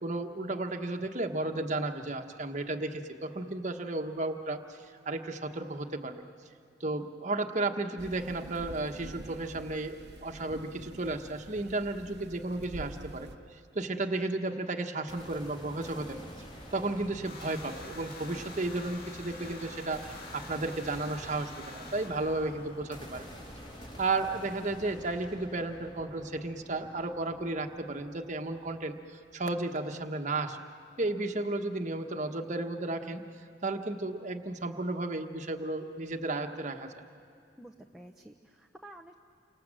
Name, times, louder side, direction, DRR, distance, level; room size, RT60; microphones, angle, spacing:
voice 1, 0.0-4.8 5.0-6.2 6.8-13.3 13.7-16.2 16.7-23.3 24.0-29.0 29.3-30.6 31.0-33.3 33.6-36.9, right 2 dB, 40° right, 4 dB, 1.3 m, -33 dB
sound 1, 8.0-13.4, right 1 dB, 60° right, 1.0 m, -47 dB
sound 2, 15.1-29.0, equal, 30° left, 4.2 m, -48 dB
sound 3, 17.2-23.4, left 3 dB, 55° left, 2.5 m, -48 dB
voice 2, 37.6-39.1, right 1 dB, ahead, 1 dB, 0.8 m, -51 dB
29.0 x 25.0 x 7.6 m, 2.4 s
head